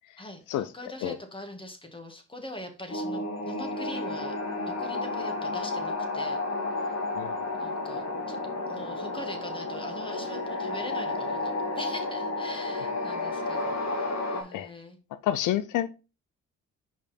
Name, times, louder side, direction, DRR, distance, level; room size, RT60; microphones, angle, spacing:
voice 1, 0.2-4.4 4.7-6.4 7.6-8.4 8.7-15.0, left 1 dB, 15° left, 1.8 m, -42 dB
sound 1, 2.9-14.4, left 2 dB, 60° left, 2.5 m, -32 dB
voice 2, 15.2-15.9, left 12 dB, 85° left, 0.6 m, -28 dB
5.4 x 5.2 x 4.3 m
cardioid pair, 90°, 30 cm